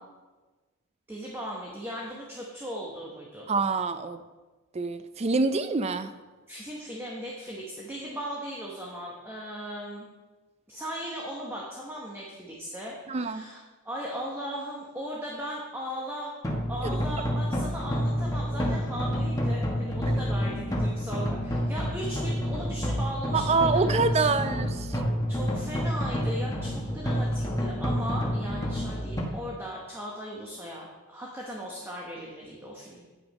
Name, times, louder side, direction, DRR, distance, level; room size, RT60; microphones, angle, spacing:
voice 1, 1.1-3.5 6.5-10.1 10.7-13.6 13.8-16.3 16.7-24.4 25.3-33.1, equal, 10° right, -3 dB, 1.0 m, -38 dB
voice 2, 3.5-4.2 4.7-6.1 13.1-13.5 23.3-25.0, right 4 dB, 30° right, 10 dB, 0.4 m, -26 dB
sound 1, 16.4-29.2, equal, 15° left, 1.1 m, -29 dB
9.4 x 5.8 x 5.2 m, 1.3 s
head